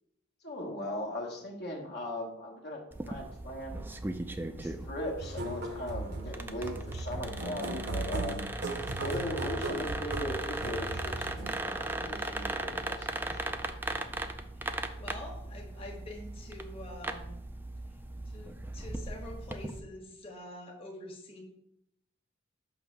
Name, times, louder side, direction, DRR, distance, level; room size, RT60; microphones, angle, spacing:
voice 1, 0.4-2.8 3.1-3.8 4.5-8.5 9.0-13.6, left 1 dB, 55° left, -1 dB, 1.2 m, -39 dB
sound 1, 2.9-19.8, right 2 dB, 10° right, 0.4 m, -38 dB
sound 2, 5.2-11.5, right 2 dB, 55° right, 0.8 m, -37 dB
voice 2, 14.6-17.3 18.2-21.4, left 1 dB, 30° left, -1 dB, 1.3 m, -46 dB
6.9 x 3.1 x 5.8 m, 0.78 s
head